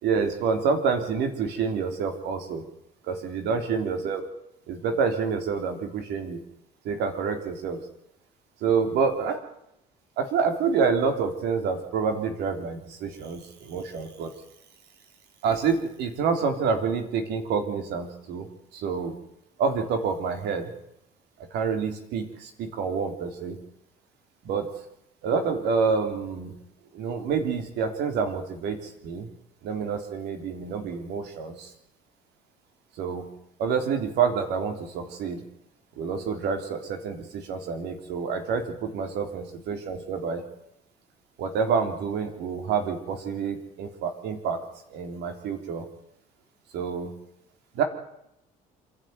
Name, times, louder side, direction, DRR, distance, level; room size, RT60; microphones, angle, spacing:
voice 1, 0.0-2.6 3.1-4.2 4.7-6.4 6.9-7.8 8.6-9.4 10.2-14.3 15.4-18.5 18.7-19.1 19.6-20.7 21.5-23.6 24.5-24.7 25.2-26.5 26.9-29.3 29.6-31.7 33.0-33.3 33.6-35.4 36.0-40.4 41.4-44.6 44.9-45.8 46.7-47.1 47.8-47.9, right 5 dB, 85° right, 6 dB, 3.6 m, -27 dB
27.0 x 11.5 x 9.5 m, 0.81 s
cardioid pair, 110°, 17 cm